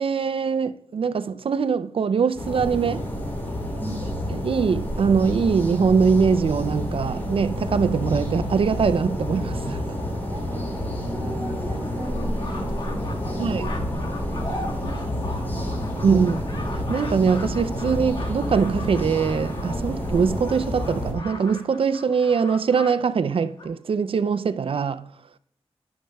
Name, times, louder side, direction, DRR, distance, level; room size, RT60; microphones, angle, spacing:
voice 1, 0.0-3.0 4.3-9.8 13.4-13.7 16.0-25.1, right 6 dB, 60° right, 0.4 m, -22 dB
sound 1, 2.4-21.1, left 1 dB, 20° left, 2.9 m, -29 dB
voice 2, 3.7-4.2 10.3-10.8 11.1-13.9 14.3-16.3, right 1 dB, 30° right, 3.6 m, -39 dB
sound 2, 6.9-8.5 9.3-9.4 9.6-9.7 10.1-10.2 10.5-10.6 11.1-22.9 23.2-23.7, left 2 dB, 55° left, 1.7 m, -39 dB
18.5 x 6.6 x 2.3 m
wide cardioid pair, 90°, 11 cm